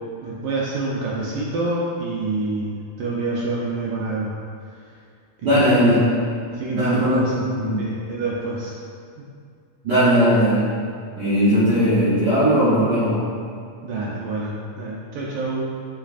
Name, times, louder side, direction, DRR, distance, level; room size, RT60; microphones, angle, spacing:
voice 1, 0.2-2.7 3.0-4.3 5.4-5.6 6.6-7.3 7.8-8.7 13.8-15.8, right 2 dB, 85° right, -5 dB, 1.3 m, -27 dB
voice 2, 5.4-6.2 6.7-7.9 9.8-10.8 11.1-13.3, equal, 65° right, -13 dB, 1.0 m, -18 dB
6.7 x 3.2 x 2.4 m, 2.3 s
omnidirectional pair, 3.3 m